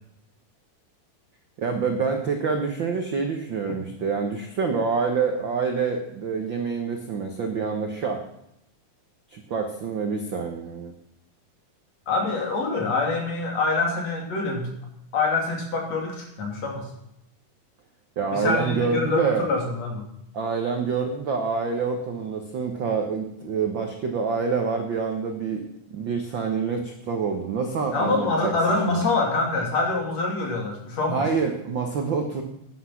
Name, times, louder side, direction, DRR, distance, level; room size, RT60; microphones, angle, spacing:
voice 1, 1.6-8.2 9.3-10.9 18.2-19.5 20.3-25.6 25.9-28.5 28.9-29.0 31.1-32.4, right 5 dB, 85° right, 4 dB, 1.0 m, -26 dB
voice 2, 12.1-14.7 15.1-16.9 18.3-20.0 27.9-31.2, left 3 dB, 50° left, 1 dB, 3.7 m, -25 dB
12.0 x 10.0 x 5.8 m, 0.78 s
omnidirectional pair, 3.9 m